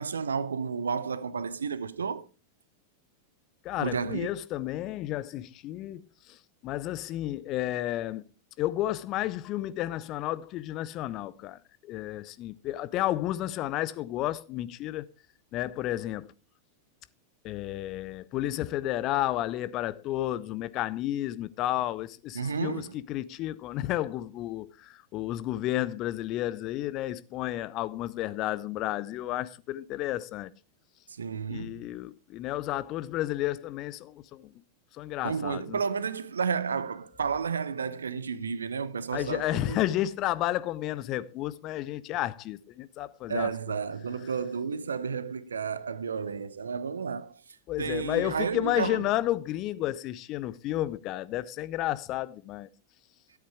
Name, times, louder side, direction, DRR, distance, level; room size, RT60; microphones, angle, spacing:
voice 1, 0.0-2.3 3.8-4.3 22.3-22.9 31.2-31.9 35.2-39.9 43.3-47.3 47.8-49.0, right 6 dB, 70° right, 0.7 m, -32 dB
voice 2, 3.6-6.4 6.6-8.3 8.6-15.1 15.5-16.3 17.4-30.5 31.5-34.5 34.9-35.8 39.1-43.5 47.7-52.7, left 14 dB, 35° left, 0.6 m, -32 dB
13.0 x 8.2 x 4.8 m
figure-of-eight pair, 90°, 0 cm